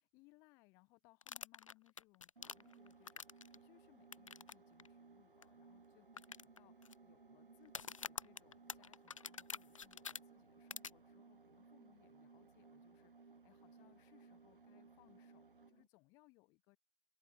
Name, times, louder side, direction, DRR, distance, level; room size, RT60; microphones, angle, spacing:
voice 1, 0.0-16.8, left 25 dB, 10° left, 6.4 m, -70 dB
sound 1, 1.2-3.6 4.1-4.5 4.8-4.9 5.4-5.5 6.2-6.9 7.6-10.2 10.7-10.9, left 6 dB, 35° left, 3.0 m, -47 dB
sound 2, 2.4-15.9, right 4 dB, 60° right, 5.4 m, -62 dB
open air
hypercardioid pair, 175°, 30 cm